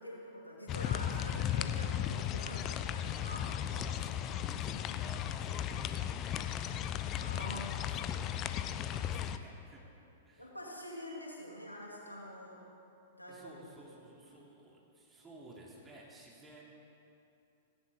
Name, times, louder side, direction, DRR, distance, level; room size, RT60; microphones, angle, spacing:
voice 1, 0.0-3.5 7.2-7.7 10.4-12.7 13.1-13.9, left 1 dB, 90° left, -3 dB, 2.9 m, -46 dB
sound 1, 0.7-9.4, left 10 dB, 30° left, 0.6 m, -36 dB
voice 2, 3.6-9.8 10.2-10.5 13.3-16.6, right 2 dB, 15° right, -4 dB, 3.1 m, -55 dB
16.5 x 16.0 x 3.8 m, 2.8 s
figure-of-eight pair, 100°, 0 cm